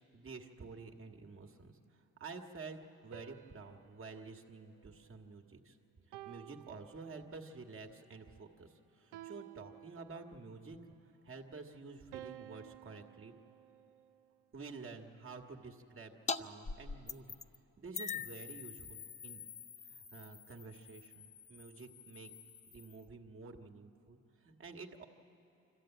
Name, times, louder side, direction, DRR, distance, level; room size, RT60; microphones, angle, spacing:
voice 1, 0.1-5.8 6.1-10.8 11.2-13.3 14.5-17.3 17.8-19.4 19.9-22.3 22.7-25.0, right 4 dB, 45° right, 4 dB, 1.6 m, -50 dB
sound 1, 3.1-5.5 6.1-7.6 9.1-10.6 12.1-14.4, right 13 dB, 90° right, 0.6 m, -54 dB
sound 2, 16.3-16.4 16.7-17.6 17.9-23.0, left 5 dB, 25° left, 0.6 m, -44 dB
25.0 x 14.0 x 9.0 m, 3.0 s
cardioid pair, 90°, 30 cm